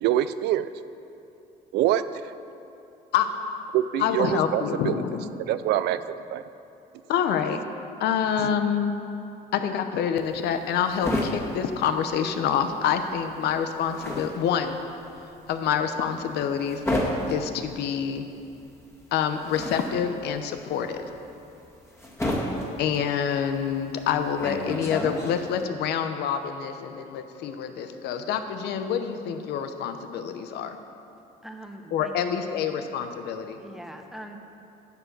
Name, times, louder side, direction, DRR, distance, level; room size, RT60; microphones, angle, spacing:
voice 1, 0.0-0.7 1.7-2.3 3.7-5.0 5.4-6.4 8.4-8.5, right 12 dB, 80° right, 13 dB, 0.4 m, -25 dB
voice 2, 4.0-5.5 7.1-7.6 8.0-8.9 9.5-14.8 15.5-16.8 17.3-18.2 19.1-21.1 22.8-30.8 31.9-33.6, left 8 dB, 75° left, 8 dB, 0.8 m, -27 dB
sound 1, 10.2-12.7 13.0-25.6, left 1 dB, 15° left, 1.9 m, -32 dB
voice 3, 31.4-32.8 33.6-34.4, right 1 dB, ahead, 4 dB, 0.9 m, -43 dB
10.5 x 7.0 x 6.1 m, 2.8 s
cardioid pair, 110°, 17 cm